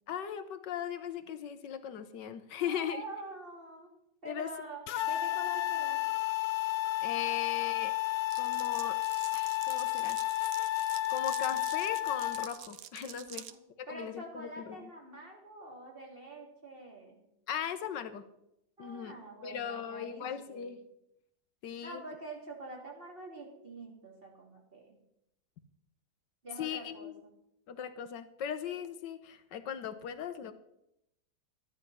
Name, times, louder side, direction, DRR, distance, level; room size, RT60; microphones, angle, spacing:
voice 1, 0.1-3.0 4.3-4.5 7.0-7.9 8.4-9.0 9.3-10.5 11.1-13.4 13.8-14.8 17.5-18.2 18.8-19.1 19.4-20.8 21.6-22.0 26.6-27.1 27.7-30.5, left 8 dB, 90° left, 11 dB, 1.7 m, -38 dB
voice 2, 2.5-3.9 4.2-6.0 13.3-13.4 13.9-17.2 18.8-20.7 21.8-25.0 26.4-27.3, right 2 dB, 30° right, 0 dB, 3.3 m, -46 dB
sound 1, 4.9-12.5, left 17 dB, 70° left, 1.1 m, -32 dB
Glass, 8.3-13.5, right 10 dB, 65° right, 1.0 m, -47 dB
13.5 x 11.0 x 5.6 m, 0.82 s
omnidirectional pair, 1.9 m